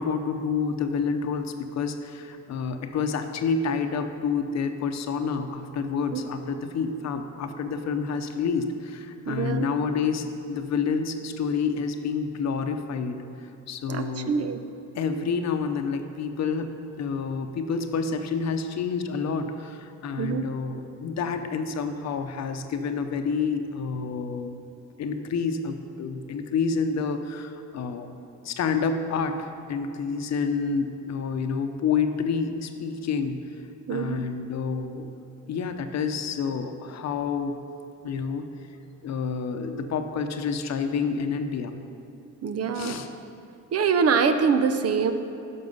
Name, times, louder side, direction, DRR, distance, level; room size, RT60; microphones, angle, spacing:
voice 1, 0.0-14.4 14.9-16.7 17.0-24.5 25.0-28.1 28.4-33.4 33.9-35.1 35.5-37.6 38.0-38.5 39.0-41.8 42.7-43.1, left 5 dB, 60° left, 7 dB, 0.8 m, -28 dB
voice 2, 9.3-9.7 13.9-14.6 20.2-20.4 33.9-34.2 42.4-43.0 43.7-45.1, right 6 dB, 55° right, 9 dB, 0.7 m, -24 dB
11.0 x 6.2 x 5.4 m, 2.7 s
cardioid pair, 90°, 30 cm